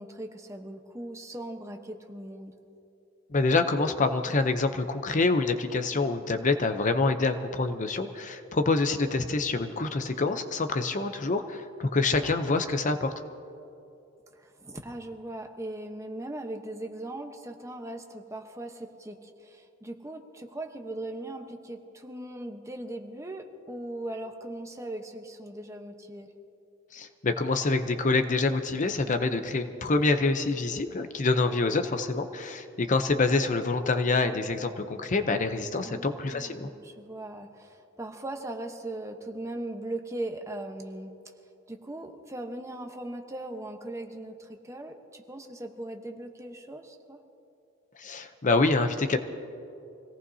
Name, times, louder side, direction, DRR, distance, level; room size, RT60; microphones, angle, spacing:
voice 1, 0.0-2.5 14.3-26.3 35.8-41.3 41.7-47.2, right 1 dB, 15° right, 4 dB, 1.0 m, -39 dB
voice 2, 3.3-13.1 26.9-36.7 48.0-49.2, left 3 dB, 40° left, 8 dB, 0.7 m, -26 dB
25.5 x 17.5 x 2.8 m, 2.7 s
head